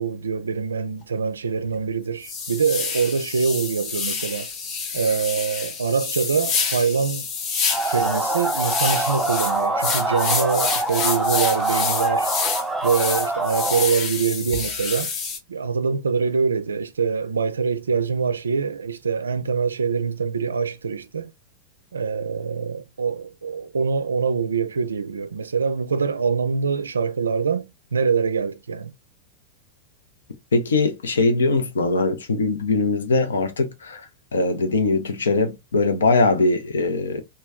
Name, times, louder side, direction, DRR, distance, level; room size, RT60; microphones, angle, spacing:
voice 1, 0.0-4.5 4.9-7.3 7.9-12.3 12.8-15.1 15.5-21.3 21.9-28.9, right 5 dB, 70° right, 0.3 m, -24 dB
sound 1, 1.0-1.1 1.6-1.7 2.2-15.4, left 5 dB, 35° left, 0.7 m, -28 dB
sound 2, 7.7-13.9, right 2 dB, ahead, 0.5 m, -25 dB
voice 2, 30.5-34.0 34.3-37.2, left 3 dB, 70° left, 0.6 m, -21 dB
3.0 x 2.2 x 3.4 m
figure-of-eight pair, 90°, 0 cm